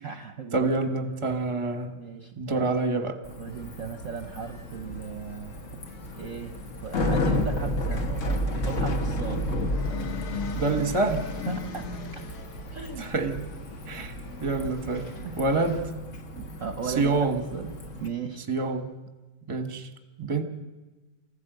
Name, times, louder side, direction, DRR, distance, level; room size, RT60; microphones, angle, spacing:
voice 1, 0.0-0.7 1.9-2.7 3.4-5.8 6.2-6.5 6.8-9.4 11.5-11.8 12.1-12.2 12.7-13.1 13.9-14.1 15.1-15.4 16.3-17.3 17.5-17.7 18.0-18.5, right 6 dB, 50° right, 6 dB, 1.0 m, -36 dB
voice 2, 0.5-2.0 2.4-3.1 10.5-11.3 13.0-13.5 13.9-14.1 14.4-15.8 17.0-17.4 18.5-18.9 19.5-19.9 20.2-20.4, right 3 dB, 20° right, 7 dB, 1.0 m, -27 dB
Bicycle, 3.2-18.1, left 1 dB, 40° left, 1.4 m, -32 dB
sound 1, 3.5-15.8, right 2 dB, 65° left, 3.1 m, -46 dB
sound 2, 9.7-12.6, left 6 dB, 80° left, 2.5 m, -36 dB
25.5 x 14.5 x 8.0 m, 1.2 s
omnidirectional pair, 2.3 m